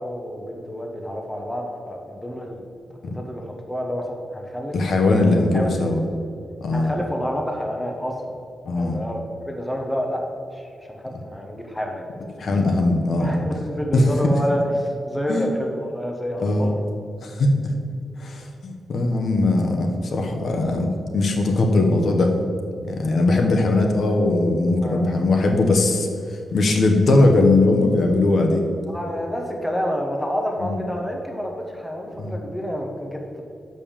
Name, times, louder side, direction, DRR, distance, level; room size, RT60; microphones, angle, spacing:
voice 1, 0.0-2.6 3.1-4.7 5.0-5.7 6.7-8.3 8.7-10.2 10.5-12.0 13.2-16.9 24.8-25.1 28.9-33.4, equal, 5° left, 1 dB, 0.9 m, -28 dB
voice 2, 4.7-6.0 6.6-6.9 8.6-9.0 12.4-13.3 13.9-14.0 15.3-15.5 16.4-16.7 17.2-17.5 18.2-22.4 22.8-26.1 26.5-28.6 30.6-30.8 32.2-32.4, left 2 dB, 50° left, 3 dB, 1.0 m, -20 dB
6.8 x 5.3 x 7.3 m, 2.5 s
wide cardioid pair, 160°, 0 cm